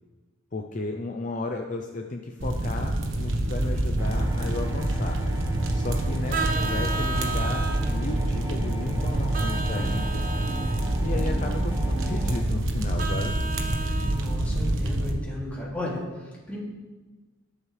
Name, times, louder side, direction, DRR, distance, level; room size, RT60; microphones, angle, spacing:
voice 1, 0.5-5.2 5.7-10.2 11.0-13.3, left 2 dB, 40° left, 3 dB, 0.6 m, -34 dB
sound 1, 2.4-15.1, right 1 dB, 70° right, 1.2 m, -27 dB
sound 2, 4.0-12.4, right 1 dB, 20° right, 1.7 m, -38 dB
Vehicle horn car horn honking, 6.3-7.9 9.3-10.8 13.0-14.2, right 3 dB, 45° right, 0.8 m, -32 dB
voice 2, 14.1-16.0 16.5-16.6, left 1 dB, 10° left, -6 dB, 2.9 m, -34 dB
20.5 x 7.3 x 3.4 m, 1.3 s
head